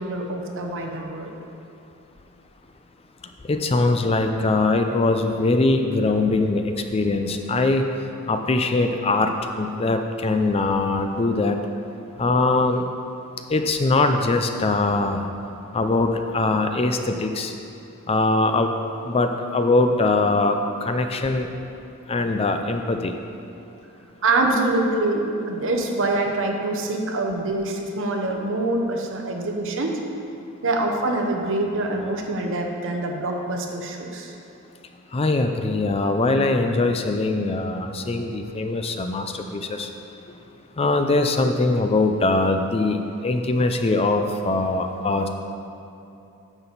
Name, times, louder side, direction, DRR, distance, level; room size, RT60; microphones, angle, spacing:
voice 1, 0.0-1.3 12.1-12.2 24.2-30.0 30.6-34.3, right 2 dB, 60° right, 2 dB, 1.0 m, -25 dB
voice 2, 3.5-7.8 8.3-9.3 9.6-11.6 12.2-12.9 13.5-15.3 15.7-17.5 18.1-18.7 19.0-21.5 22.1-23.1 35.1-39.9 40.8-45.3, left 2 dB, 25° left, 6 dB, 0.4 m, -22 dB
9.7 x 7.0 x 4.1 m, 2.8 s
head